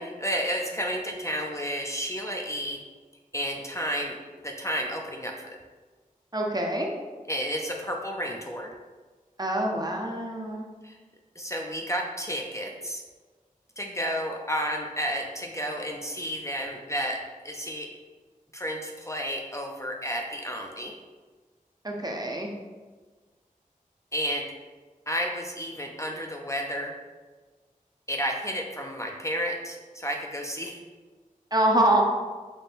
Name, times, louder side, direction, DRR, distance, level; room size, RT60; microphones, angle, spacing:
voice 1, 0.0-2.8 3.3-5.6 7.3-8.7 10.8-11.0 11.4-13.0 13.8-17.9 18.5-20.9 24.1-24.5 25.1-26.9 28.1-30.8, equal, 20° left, 0 dB, 0.4 m, -31 dB
voice 2, 6.3-6.9 9.4-10.7 21.8-22.5 31.5-32.0, right 1 dB, 30° right, 0 dB, 0.6 m, -25 dB
4.2 x 2.2 x 3.3 m, 1.4 s
wide cardioid pair, 45°, 14 cm